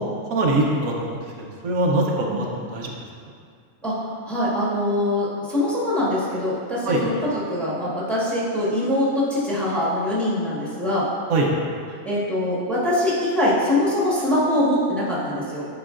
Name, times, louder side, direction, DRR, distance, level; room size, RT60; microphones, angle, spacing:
voice 1, 0.3-3.0 6.8-7.0 11.3-11.5, right 2 dB, 80° right, -1 dB, 1.2 m, -23 dB
voice 2, 3.8-11.1 12.0-15.7, left 1 dB, ahead, -8 dB, 1.2 m, -23 dB
9.1 x 4.9 x 2.5 m, 2.2 s
omnidirectional pair, 1.5 m